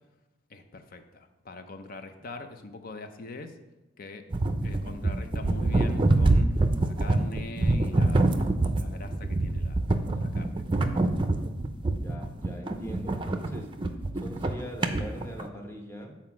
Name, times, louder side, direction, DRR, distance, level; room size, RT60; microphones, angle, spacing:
voice 1, 0.5-3.6 4.0-4.2 4.6-6.5 6.8-8.4 8.6-9.8 10.1-10.6, left 3 dB, 50° left, 8 dB, 0.7 m, -42 dB
sound 1, 4.3-15.5, right 2 dB, 25° right, 0.5 m, -25 dB
voice 2, 11.9-13.7 14.1-16.2, equal, 15° left, 2 dB, 1.0 m, -41 dB
7.8 x 4.3 x 6.1 m, 1.0 s
head